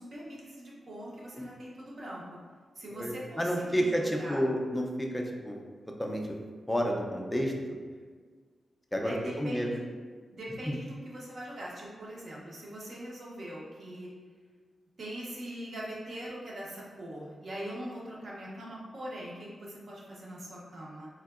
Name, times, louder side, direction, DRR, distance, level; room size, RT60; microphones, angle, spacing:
voice 1, 0.0-2.2 2.8-4.4 9.0-9.9 10.3-14.1 15.0-21.1, right 1 dB, 50° right, -4 dB, 0.7 m, -42 dB
voice 2, 3.0-5.6 6.0-6.3 6.7-7.8 8.9-9.7 10.6-10.8, equal, 5° left, 1 dB, 0.3 m, -30 dB
3.3 x 2.7 x 2.4 m, 1.5 s
wide cardioid pair, 155°, 0 cm